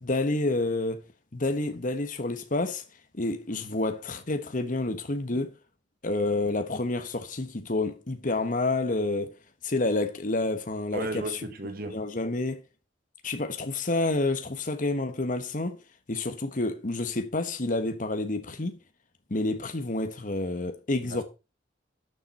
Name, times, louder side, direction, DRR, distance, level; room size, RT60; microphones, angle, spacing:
voice 1, 0.0-1.0 1.3-2.8 3.1-5.5 6.0-9.3 9.6-11.4 11.9-12.6 13.2-15.8 16.1-18.8 19.3-21.2, left 2 dB, 45° left, 1.3 m, -29 dB
voice 2, 10.9-12.0 21.1-21.2, right 2 dB, 50° right, 1.7 m, -35 dB
12.5 x 7.0 x 4.3 m
head